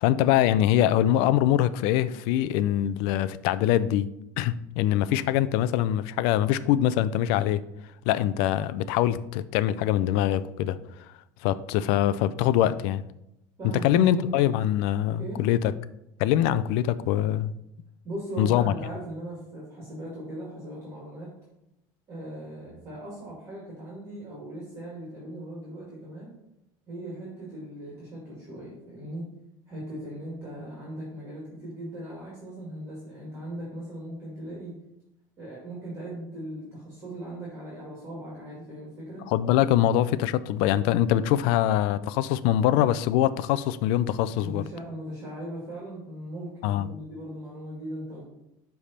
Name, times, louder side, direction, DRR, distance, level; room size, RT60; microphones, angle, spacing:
voice 1, 0.0-4.1 4.4-7.6 8.1-10.8 11.4-13.0 13.8-15.7 16.2-17.5 18.4-18.7 39.3-44.6 46.6-46.9, left 12 dB, 65° left, 15 dB, 0.4 m, -23 dB
voice 2, 13.6-14.3 15.2-15.4 18.0-21.3 22.1-26.3 26.9-29.3 29.7-34.8 35.4-39.3 44.4-48.3, right 1 dB, 30° right, -5 dB, 2.3 m, -39 dB
10.0 x 3.5 x 4.2 m, 0.84 s
cardioid pair, 150°, 9 cm